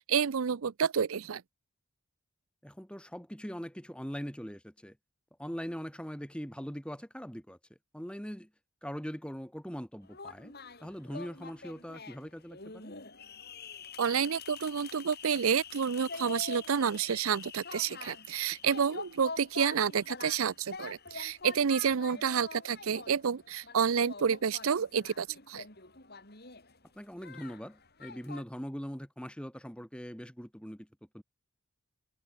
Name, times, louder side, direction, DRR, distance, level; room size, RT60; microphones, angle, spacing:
voice 1, 0.0-1.4 14.0-25.6, right 7 dB, 70° right, 0.5 m, -29 dB
voice 2, 2.6-5.0 5.4-7.6 7.9-8.5 8.8-10.5 10.8-12.9 22.1-22.2 26.9-30.9 31.1-31.2, equal, 5° left, 3.2 m, -41 dB
sound 1, 10.0-28.4, left 4 dB, 45° left, 7.2 m, -46 dB
head